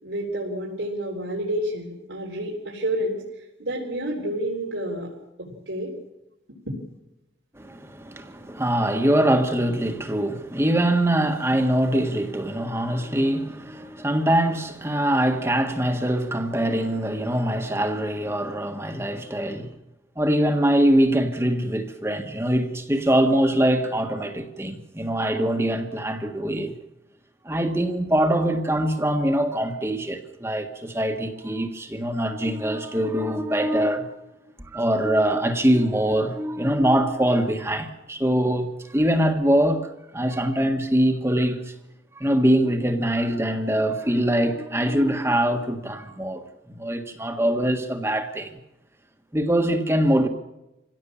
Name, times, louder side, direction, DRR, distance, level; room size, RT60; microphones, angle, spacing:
voice 1, 0.0-3.2 3.6-5.1 5.7-5.9, right 1 dB, 90° right, 4.0 m, -29 dB
voice 2, 7.6-19.7 20.2-26.7 27.4-34.2 34.7-41.7 42.1-46.4 46.7-48.5 49.3-50.3, right 1 dB, 15° right, 1.6 m, -23 dB
26.0 x 17.0 x 7.3 m
head